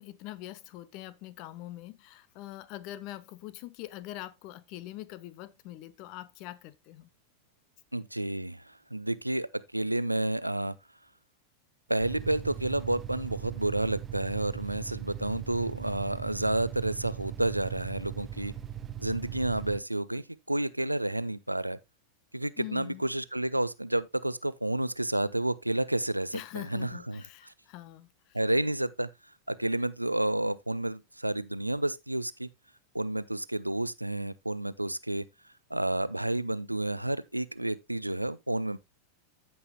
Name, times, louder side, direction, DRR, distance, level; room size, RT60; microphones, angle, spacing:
voice 1, 0.0-7.1 22.6-23.0 26.3-28.4, left 15 dB, 45° left, 0.6 m, -43 dB
voice 2, 7.9-10.7 11.9-18.5 19.0-21.8 22.3-27.5 28.3-29.1 29.5-32.5 32.9-35.2 35.7-38.8, right 1 dB, 85° right, 0.4 m, -30 dB
sound 1, 12.0-19.8, right 10 dB, 20° right, 0.7 m, -39 dB
14.5 x 5.5 x 2.2 m
figure-of-eight pair, 90°, 0 cm